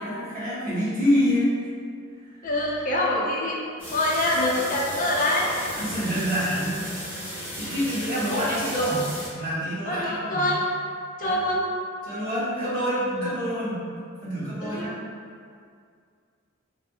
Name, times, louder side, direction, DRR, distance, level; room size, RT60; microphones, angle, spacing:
voice 1, 0.0-1.6 5.7-6.9 7.5-10.5 11.2-11.4 12.0-13.9 14.2-14.9, equal, 45° right, -11 dB, 1.1 m, -26 dB
voice 2, 2.4-3.6 3.9-5.5 9.9-10.6 11.2-11.6 14.6-14.9, left 1 dB, 40° left, -4 dB, 0.5 m, -25 dB
sound 1, 3.8-9.3, equal, 10° right, 0.8 m, -35 dB
3.3 x 2.0 x 2.6 m, 2.2 s
head